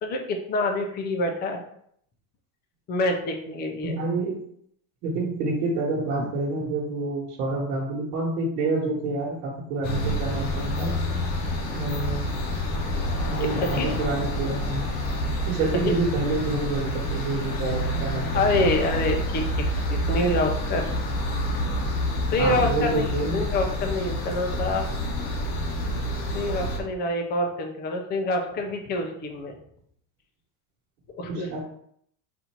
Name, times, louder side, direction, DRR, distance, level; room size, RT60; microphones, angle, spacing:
voice 1, 0.0-1.6 2.9-4.0 13.5-14.0 15.9-16.0 18.3-20.9 22.3-24.9 26.3-29.5 31.2-31.6, left 2 dB, 25° left, 3 dB, 0.5 m, -26 dB
voice 2, 3.8-4.4 5.0-10.9 11.7-12.3 12.8-12.9 13.2-15.0 15.5-18.7 21.6-22.0 22.4-23.4 31.3-31.6, right 3 dB, 75° right, -4 dB, 1.4 m, -28 dB
sound 1, 9.8-26.8, left 1 dB, 50° left, 1.1 m, -28 dB
4.2 x 2.7 x 4.4 m, 0.68 s
cardioid pair, 155°, 44 cm